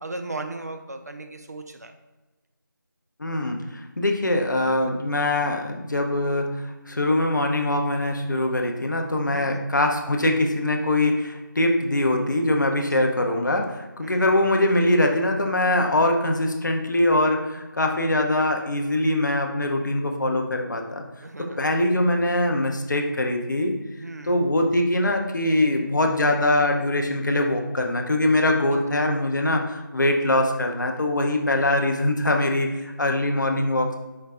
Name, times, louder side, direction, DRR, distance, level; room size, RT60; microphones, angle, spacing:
voice 1, 0.0-1.9 9.2-9.5 12.7-13.1 14.0-14.3 21.2-21.6 24.0-24.4 28.7-29.1 31.5-31.7, right 2 dB, 50° right, 6 dB, 0.4 m, -37 dB
voice 2, 3.2-21.0 21.4-23.7 24.3-33.9, left 1 dB, 60° left, 3 dB, 0.6 m, -23 dB
4.7 x 2.2 x 3.4 m, 1.2 s
figure-of-eight pair, 170°, 11 cm